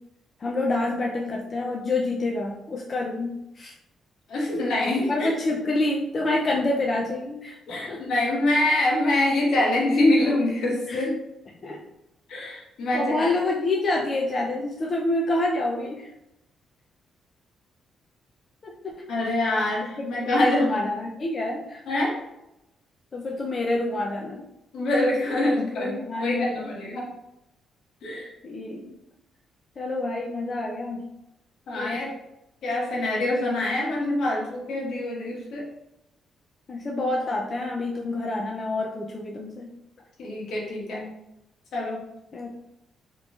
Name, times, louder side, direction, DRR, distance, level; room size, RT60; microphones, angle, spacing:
voice 1, 0.4-3.7 4.5-4.7 5.1-7.6 7.9-8.0 10.9-11.1 11.6-11.8 12.9-16.1 18.6-19.1 20.0-21.8 23.1-24.4 25.6-26.7 28.4-29.0 29.8-31.1 31.8-32.0 36.7-39.7 42.3-42.5, left 2 dB, 40° left, -1 dB, 0.4 m, -27 dB
voice 2, 4.3-5.3 7.7-11.2 12.3-13.3 19.1-20.7 21.9-22.1 24.7-27.1 28.0-28.3 31.7-32.1 32.6-35.6 40.2-41.1 41.7-42.0, left 1 dB, 75° left, -3 dB, 1.2 m, -25 dB
3.7 x 3.0 x 2.4 m, 0.88 s
cardioid pair, 110°, 0 cm